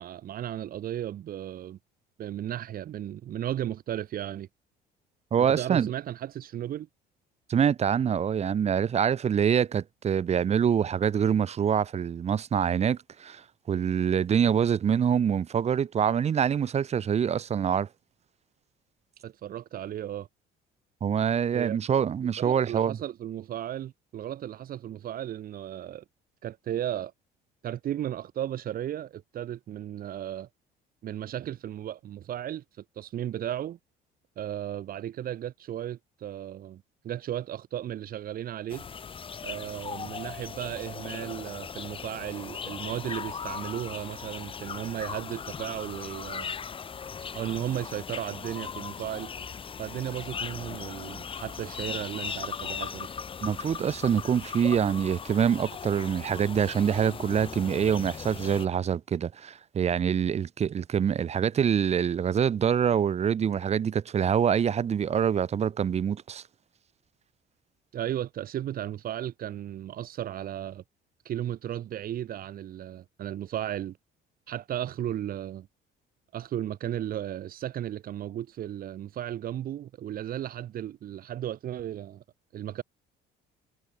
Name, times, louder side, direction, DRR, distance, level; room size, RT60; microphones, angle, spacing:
voice 1, 0.0-1.8 2.2-4.5 5.5-6.9 19.2-20.3 21.5-21.8 22.4-26.0 26.4-27.1 27.6-30.5 31.0-33.8 34.4-38.9 39.4-46.5 47.3-49.3 49.8-53.1 67.9-70.8 71.3-74.0 74.5-75.7 76.3-82.2 82.5-82.8, right 11 dB, 50° right, 3.7 m, -35 dB
voice 2, 5.3-5.9 7.5-17.9 21.0-23.0 53.4-66.4, right 8 dB, 35° right, 2.4 m, -25 dB
sound 1, 38.7-58.7, left 6 dB, 30° left, 2.2 m, -38 dB
cardioid pair, 135°, 19 cm